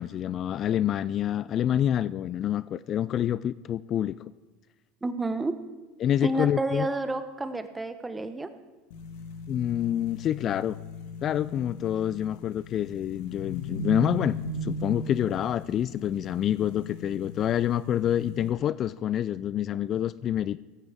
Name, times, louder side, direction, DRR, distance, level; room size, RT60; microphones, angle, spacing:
voice 1, 0.0-4.3 6.0-6.9 9.5-10.8 11.2-14.4 14.6-20.6, left 10 dB, 45° left, 18 dB, 0.3 m, -27 dB
voice 2, 5.0-5.6 6.2-8.5, right 2 dB, 15° right, 10 dB, 1.1 m, -30 dB
sound 1, 8.9-18.5, equal, 70° left, 1.8 m, -38 dB
17.0 x 15.0 x 3.6 m, 1.2 s
hypercardioid pair, 80°, 0 cm